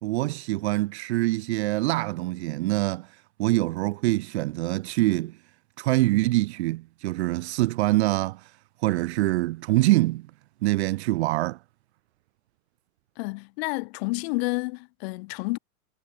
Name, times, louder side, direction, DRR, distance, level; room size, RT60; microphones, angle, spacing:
voice 1, 0.0-3.1 3.4-5.4 5.8-8.5 8.8-10.3 10.6-11.6, right 18 dB, 45° right, 2.0 m, -24 dB
voice 2, 13.2-15.6, left 27 dB, 45° left, 7.3 m, -30 dB
hypercardioid pair, 115°, 43 cm